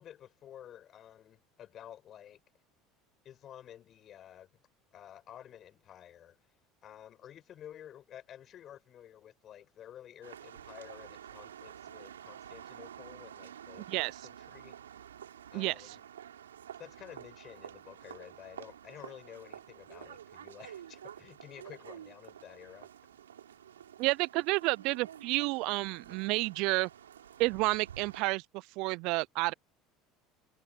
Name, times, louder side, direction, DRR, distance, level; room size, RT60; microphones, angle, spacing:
voice 1, 0.0-2.4 3.2-4.6 4.9-6.4 6.8-14.7 15.5-16.0 16.8-22.9, left 10 dB, 45° left, 8.0 m, -51 dB
sound 1, 10.2-28.2, right 9 dB, 90° right, 3.8 m, -50 dB
voice 2, 24.0-26.9 27.4-28.4 28.8-29.5, right 24 dB, 65° right, 0.4 m, -30 dB
hypercardioid pair, 75°, 0 cm